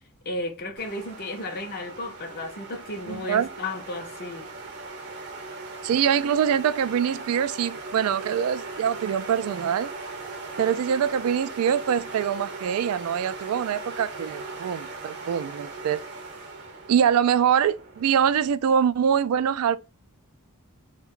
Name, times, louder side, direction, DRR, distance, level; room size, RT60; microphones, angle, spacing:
voice 1, 0.3-4.5, left 2 dB, 45° left, 0.6 m, -34 dB
sound 1, 0.8-18.5, right 3 dB, 50° right, 0.8 m, -39 dB
voice 2, 3.1-3.5 5.8-9.9 10.6-16.0 16.9-19.8, right 8 dB, 70° right, 0.3 m, -24 dB
3.3 x 2.2 x 3.6 m
head